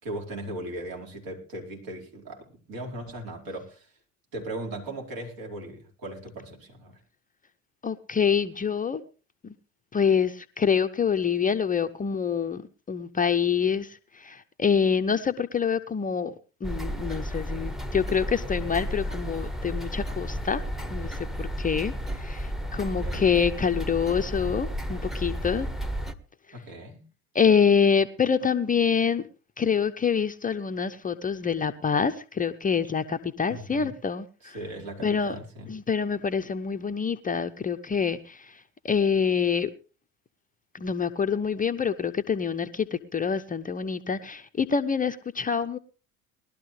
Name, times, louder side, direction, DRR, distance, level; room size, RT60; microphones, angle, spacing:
voice 1, 0.0-3.9 4.3-7.0 22.9-23.2 26.5-27.1 33.5-33.9 34.4-35.7, right 1 dB, 55° right, 4.8 m, -38 dB
voice 2, 7.8-9.0 9.4-9.5 9.9-12.6 12.9-16.3 16.6-20.6 20.9-25.7 27.3-29.2 29.6-34.6 35.0-35.4 35.7-39.7 40.7-45.8, left 6 dB, 20° left, 0.8 m, -26 dB
sound 1, 16.6-26.1, equal, ahead, 1.2 m, -32 dB
20.0 x 12.5 x 3.3 m
figure-of-eight pair, 65°, 40 cm